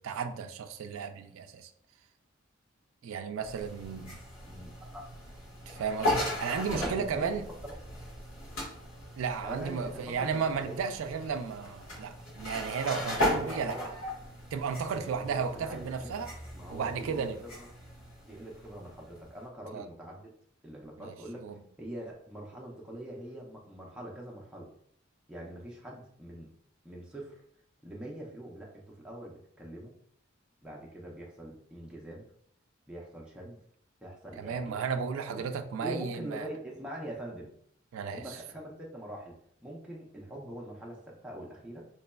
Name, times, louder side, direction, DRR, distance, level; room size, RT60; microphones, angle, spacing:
voice 1, 0.0-1.7 3.0-4.2 5.7-7.5 9.2-13.8 14.5-16.3 16.7-17.4 19.7-19.9 21.0-21.6 34.4-36.5 37.9-38.4, right 6 dB, 75° right, 8 dB, 0.3 m, -34 dB
sound 1, 3.4-19.5, left 1 dB, 70° left, 1.5 m, -37 dB
voice 2, 4.5-5.1 6.6-7.3 7.6-7.7 9.4-10.8 13.3-13.9 14.9-16.2 16.5-17.7 18.2-20.3 20.6-21.5 21.8-24.7 25.3-26.5 26.8-27.4 27.8-29.9 30.6-32.2 32.9-33.6 34.0-34.8 35.3-35.5 35.8-37.5 38.1-41.9, right 1 dB, 5° right, -4 dB, 0.5 m, -43 dB
4.0 x 3.0 x 2.2 m, 0.66 s
head